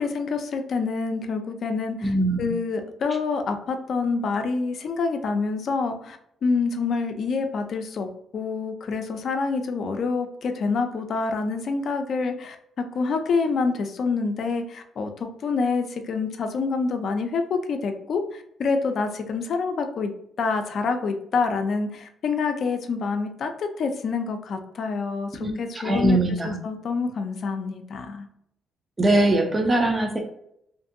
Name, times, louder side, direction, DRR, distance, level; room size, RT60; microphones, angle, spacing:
voice 1, 0.0-8.1 8.3-20.1 20.4-28.3, left 4 dB, 60° left, 6 dB, 0.4 m, -27 dB
voice 2, 2.0-2.5 25.4-25.5 25.8-26.6 29.0-30.2, right 1 dB, 25° right, 2 dB, 0.5 m, -21 dB
2.6 x 2.6 x 2.5 m, 0.74 s
cardioid pair, 90°, 0 cm